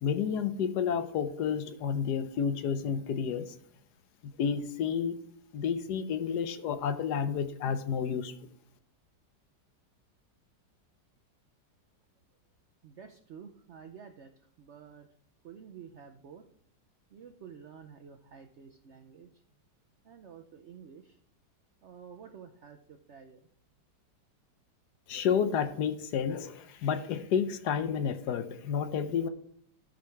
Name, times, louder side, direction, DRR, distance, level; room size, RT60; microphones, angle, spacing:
voice 1, 0.0-3.5 4.2-5.2 5.5-8.3 25.1-29.3, left 7 dB, 70° left, 10 dB, 1.2 m, -30 dB
voice 2, 12.8-14.3 14.6-15.1 15.4-16.4 17.1-19.3 20.0-21.2 21.8-23.4, right 7 dB, 70° right, 5 dB, 0.6 m, -50 dB
13.0 x 5.2 x 4.7 m, 0.65 s
omnidirectional pair, 1.9 m